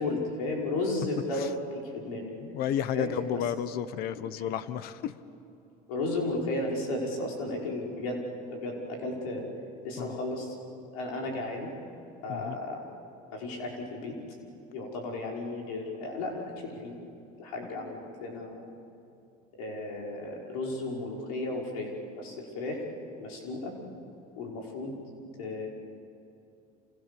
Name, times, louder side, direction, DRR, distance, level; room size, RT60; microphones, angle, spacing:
voice 1, 0.0-2.2 2.9-3.1 5.9-8.2 8.5-9.5 9.8-10.6 10.9-11.7 12.2-12.8 13.3-14.2 14.7-17.0 17.4-18.7 19.6-21.9 22.2-22.8 23.2-23.7 24.4-25.0 25.4-25.7, left 2 dB, 90° left, -1 dB, 5.6 m, -34 dB
voice 2, 2.4-5.2 10.0-10.2 12.3-12.6, left 9 dB, 60° left, 14 dB, 1.3 m, -32 dB
29.5 x 27.5 x 7.0 m, 2.7 s
supercardioid pair, 105°, 18 cm